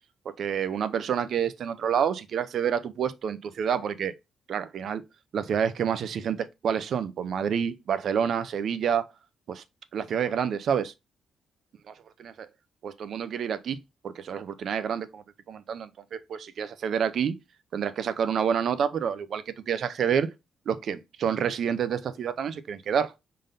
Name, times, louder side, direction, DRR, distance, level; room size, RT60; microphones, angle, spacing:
voice 1, 0.4-4.1 4.5-5.0 5.3-9.0 9.5-9.6 9.9-10.9 12.2-12.5 12.8-13.8 14.0-17.4 17.7-20.3 20.7-23.1, right 7 dB, 55° right, 0.5 m, -28 dB
5.1 x 3.8 x 2.6 m
cardioid pair, 160°, 0 cm